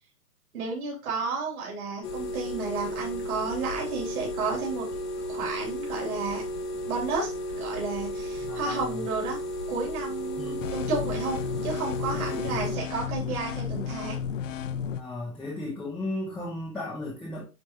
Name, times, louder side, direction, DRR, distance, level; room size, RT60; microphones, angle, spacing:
voice 1, 0.5-4.9 5.2-6.4 6.9-9.4 9.7-14.2, right 4 dB, 60° right, 3.2 m, -32 dB
sound 1, 2.0-12.8, equal, 80° left, 1.6 m, -34 dB
voice 2, 8.4-9.0 10.4-10.8 12.1-12.4 14.9-17.4, left 2 dB, ahead, 0.6 m, -35 dB
sound 2, 10.6-15.0, left 8 dB, 50° left, 0.7 m, -33 dB
9.3 x 3.5 x 3.0 m
hypercardioid pair, 150°, 47 cm